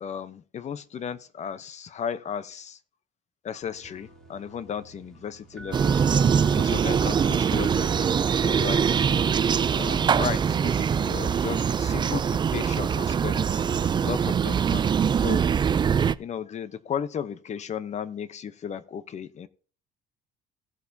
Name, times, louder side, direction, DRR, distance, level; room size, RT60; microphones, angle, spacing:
voice 1, 0.0-2.8 3.4-6.1 6.5-9.1 9.8-13.7 13.9-15.5 16.2-19.5, left 8 dB, 45° left, 0.8 m, -35 dB
sound 1, 3.6-12.3, equal, 5° left, 2.2 m, -46 dB
sound 2, 5.7-16.1, right 7 dB, 25° right, 0.3 m, -23 dB
16.5 x 6.9 x 2.7 m
cardioid pair, 110°, 17 cm